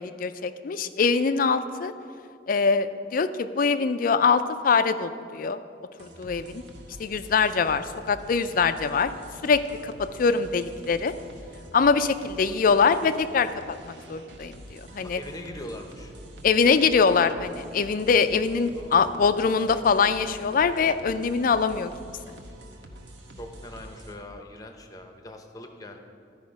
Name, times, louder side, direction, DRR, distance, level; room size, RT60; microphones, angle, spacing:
voice 1, 0.0-1.9 2.5-5.6 6.0-6.6 7.0-9.1 9.4-11.1 11.7-13.5 13.8-15.2 16.4-21.9, left 5 dB, 45° left, 12 dB, 0.4 m, -23 dB
sound 1, 6.0-24.1, right 1 dB, 70° right, 1.0 m, -46 dB
voice 2, 15.0-16.1 18.7-19.4 23.4-26.0, left 1 dB, 20° left, 5 dB, 0.7 m, -41 dB
13.0 x 5.1 x 5.2 m, 2.4 s
head